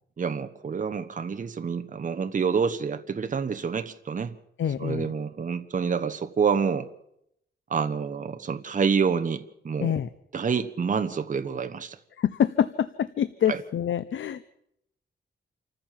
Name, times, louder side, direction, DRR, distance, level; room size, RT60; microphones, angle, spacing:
voice 1, 0.2-4.3 4.8-6.9 7.7-9.9 10.3-12.0 13.5-13.6, right 6 dB, 40° right, 8 dB, 1.1 m, -27 dB
voice 2, 4.6-5.1 9.8-10.1 12.2-14.5, left 9 dB, 75° left, 14 dB, 0.8 m, -26 dB
27.5 x 14.5 x 7.5 m, 0.77 s
wide cardioid pair, 145°, 20 cm